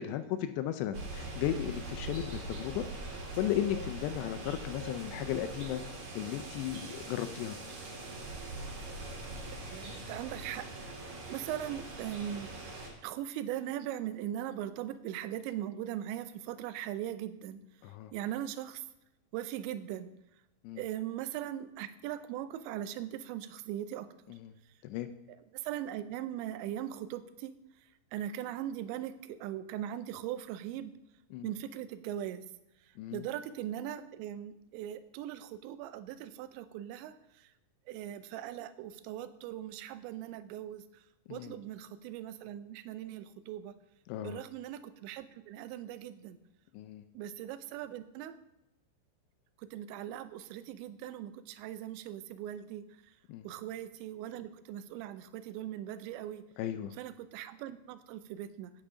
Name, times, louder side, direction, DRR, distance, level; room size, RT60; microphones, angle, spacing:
voice 1, 0.0-2.8 3.1-5.8 6.1-7.6 17.8-18.1 20.6-20.8 24.3-24.5 24.8-25.1 31.3-31.5 33.0-33.3 41.3-41.6 44.1-44.4 46.7-47.0 53.3-53.5 56.6-56.9, left 11 dB, 80° left, 9 dB, 2.6 m, -35 dB
sound 1, 0.9-12.9, right 2 dB, 50° right, 2.8 m, -42 dB
voice 2, 9.7-10.7 11.0-12.5 13.0-17.6 18.1-18.8 19.3-20.1 20.8-24.1 25.5-27.6 28.1-30.9 31.4-32.4 33.1-37.5 37.9-41.0 41.3-43.7 44.2-46.4 47.1-48.3 49.6-53.1 53.4-56.4 57.0-58.7, right 11 dB, 85° right, 12 dB, 2.9 m, -40 dB
9.0 x 8.8 x 5.0 m, 0.90 s
omnidirectional pair, 5.2 m